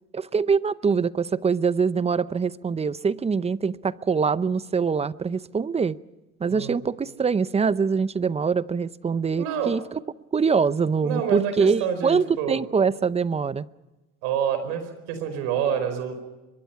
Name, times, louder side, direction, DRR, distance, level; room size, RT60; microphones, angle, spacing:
voice 1, 0.1-6.0 6.4-10.0 10.3-13.6, right 5 dB, 20° right, 17 dB, 0.7 m, -24 dB
voice 2, 6.5-6.9 9.4-9.7 11.0-12.6 14.2-16.1, right 8 dB, 85° right, 10 dB, 4.7 m, -27 dB
24.0 x 22.0 x 5.8 m, 1.1 s
supercardioid pair, 100°, 29 cm